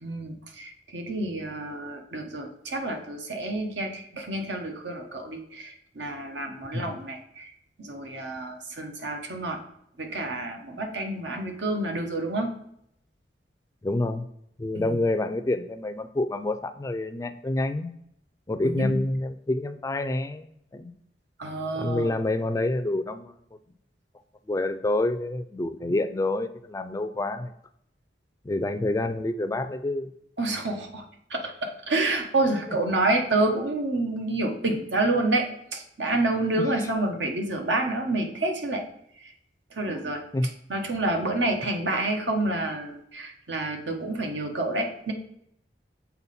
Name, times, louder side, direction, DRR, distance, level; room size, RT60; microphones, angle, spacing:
voice 1, 0.0-7.5 7.8-9.6 10.0-12.5 14.7-15.0 18.6-19.0 21.4-22.1 30.4-31.0 31.3-38.8 39.2-39.3 39.7-40.2 40.7-45.1, right 2 dB, 90° right, 4 dB, 1.1 m, -28 dB
voice 2, 13.8-14.3 14.6-17.9 18.5-20.9 21.7-23.3 24.5-27.5 28.4-30.1 39.9-40.5, left 2 dB, 20° left, 10 dB, 0.3 m, -28 dB
7.0 x 4.3 x 4.1 m, 0.73 s
head